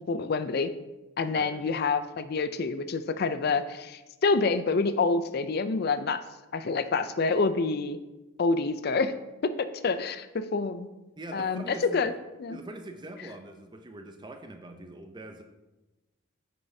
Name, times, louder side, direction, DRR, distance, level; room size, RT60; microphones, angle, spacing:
voice 1, 0.1-0.7 1.2-6.2 6.5-8.0 8.4-9.1 9.4-10.9 11.3-12.1 12.4-12.6, left 4 dB, 50° left, 12 dB, 0.4 m, -27 dB
voice 2, 11.2-12.1 12.5-15.4, right 1 dB, 20° right, 6 dB, 0.5 m, -43 dB
8.6 x 6.5 x 2.7 m, 1.1 s
head